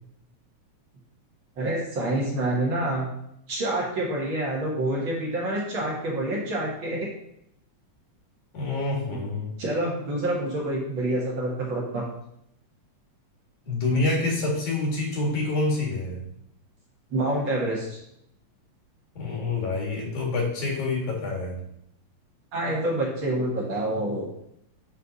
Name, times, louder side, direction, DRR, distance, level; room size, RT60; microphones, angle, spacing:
voice 1, 1.6-3.1 3.5-7.1 9.1-9.2 9.6-12.1 17.1-18.0 22.5-24.3, right 1 dB, 50° right, -4 dB, 2.0 m, -27 dB
voice 2, 8.5-9.6 13.6-16.2 19.1-21.6, left 3 dB, 90° left, -2 dB, 3.4 m, -27 dB
9.5 x 3.6 x 4.0 m, 0.76 s
omnidirectional pair, 3.3 m